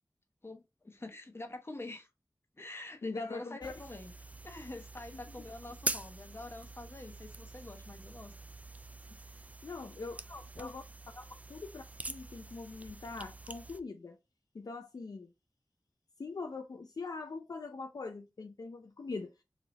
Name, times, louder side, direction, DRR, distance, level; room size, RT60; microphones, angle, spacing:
voice 1, 0.4-2.1 2.6-4.1 4.4-8.3 10.3-10.8 11.1-11.3, left 2 dB, 40° left, 1.0 m, -46 dB
voice 2, 3.0-3.7 9.6-10.2 10.6-10.8 11.5-14.2 14.5-15.3 16.2-19.4, left 3 dB, 70° left, 0.4 m, -42 dB
sound 1, 3.6-13.8, right 2 dB, 20° right, 0.3 m, -44 dB
4.1 x 2.8 x 2.9 m
wide cardioid pair, 60°, 7 cm